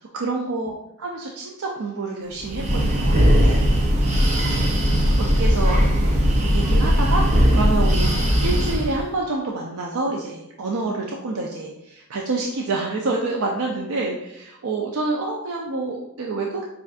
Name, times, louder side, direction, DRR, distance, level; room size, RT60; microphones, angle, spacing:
voice 1, 0.0-3.6 4.4-6.2 6.5-16.7, right 3 dB, 80° right, -1 dB, 0.5 m, -28 dB
Breathing, 2.4-9.0, equal, 35° right, 0.6 m, -18 dB
6.8 x 2.5 x 2.4 m, 0.83 s
head